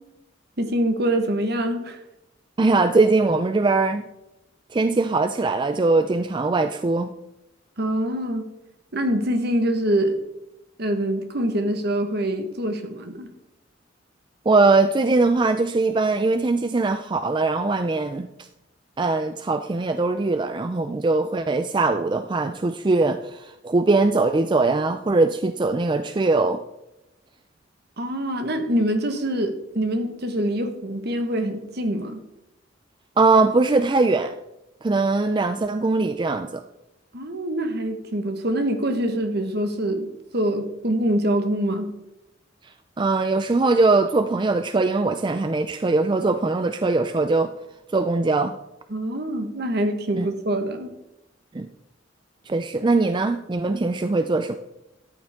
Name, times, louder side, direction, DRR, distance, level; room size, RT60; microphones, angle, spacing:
voice 1, 0.6-2.0 7.8-8.5 8.9-10.2 10.8-13.3 28.0-32.2 37.1-41.9 48.9-50.9, right 1 dB, 55° right, 1.4 m, -25 dB
voice 2, 2.6-4.1 4.7-7.1 14.5-18.3 19.0-26.6 33.2-34.3 34.8-36.6 42.6-47.5 47.9-48.6 50.2-50.3 51.5-51.7 52.5-54.6, right 3 dB, 25° right, 0.4 m, -21 dB
13.5 x 9.3 x 3.6 m
head